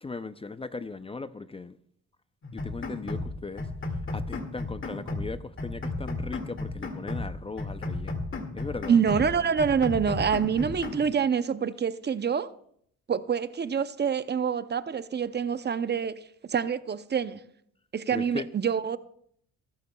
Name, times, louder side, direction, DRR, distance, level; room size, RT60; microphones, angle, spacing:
voice 1, 0.0-1.8 2.5-3.7 4.1-8.2 8.5-9.0 18.1-18.5, left 4 dB, 20° left, 0.5 m, -38 dB
sound 1, 2.4-3.3 3.6-5.3 5.6-7.3 7.6-9.3 9.6-11.1, left 2 dB, 40° left, 2.1 m, -34 dB
voice 2, 8.9-12.5 13.1-17.4 17.9-19.0, right 7 dB, 35° right, 0.6 m, -26 dB
24.0 x 12.0 x 2.3 m
cardioid pair, 90°, 30 cm